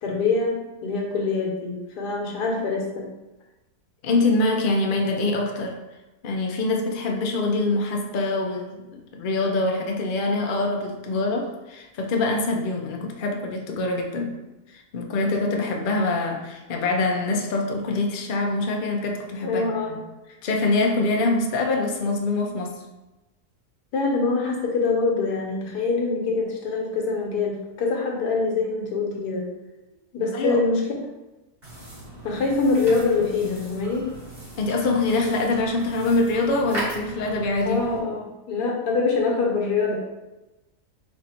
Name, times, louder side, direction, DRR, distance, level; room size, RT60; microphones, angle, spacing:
voice 1, 0.0-3.1 19.4-20.0 23.9-29.5 30.1-30.8 32.2-34.1 37.6-40.0, left 4 dB, 85° left, -1 dB, 1.5 m, -24 dB
voice 2, 4.0-5.8 6.2-14.4 14.7-20.0 20.4-22.8 30.3-30.6 34.6-37.8, left 2 dB, 70° left, 2 dB, 0.5 m, -24 dB
sound 1, 31.6-38.0, right 1 dB, 40° right, 1.9 m, -38 dB
4.6 x 2.6 x 4.2 m, 1.0 s
omnidirectional pair, 1.7 m